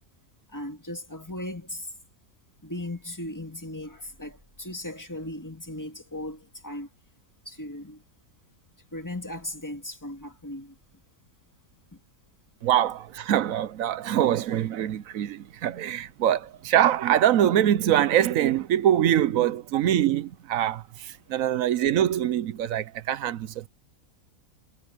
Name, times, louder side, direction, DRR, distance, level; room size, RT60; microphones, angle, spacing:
voice 1, 0.5-1.9 2.6-6.9 7.5-8.0 8.9-10.7, left 1 dB, 15° left, 2.2 m, -37 dB
voice 2, 12.6-23.6, right 11 dB, 70° right, 1.1 m, -24 dB
omnidirectional pair, 1.5 m